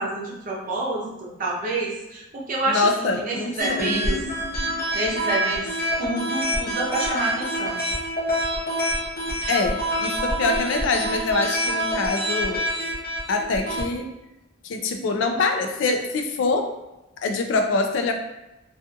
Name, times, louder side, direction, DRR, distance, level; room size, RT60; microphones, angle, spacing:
voice 1, 0.0-4.2 4.9-5.7 6.0-7.9, right 2 dB, 40° right, -4 dB, 0.6 m, -28 dB
voice 2, 2.7-4.1 9.5-12.7 13.3-14.1 14.6-16.7 17.2-18.1, left 3 dB, 65° left, 5 dB, 0.3 m, -24 dB
sound 1, 3.6-13.8, equal, 50° left, 0.7 m, -26 dB
2.4 x 2.4 x 2.5 m, 0.96 s
head